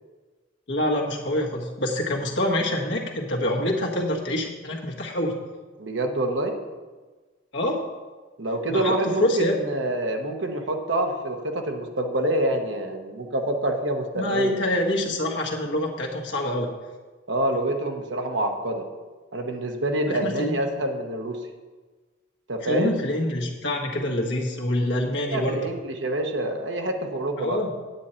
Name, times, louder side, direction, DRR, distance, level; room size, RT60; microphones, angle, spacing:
voice 1, 0.7-5.3 7.5-7.8 8.7-9.5 14.1-16.7 20.1-20.6 22.6-25.6 27.4-27.7, left 1 dB, 65° left, -1 dB, 1.6 m, -26 dB
voice 2, 5.8-6.6 8.4-14.6 17.3-18.9 19.3-21.4 22.5-23.0 25.2-27.6, right 1 dB, 70° right, 3 dB, 1.1 m, -26 dB
9.3 x 8.4 x 4.4 m, 1.3 s
head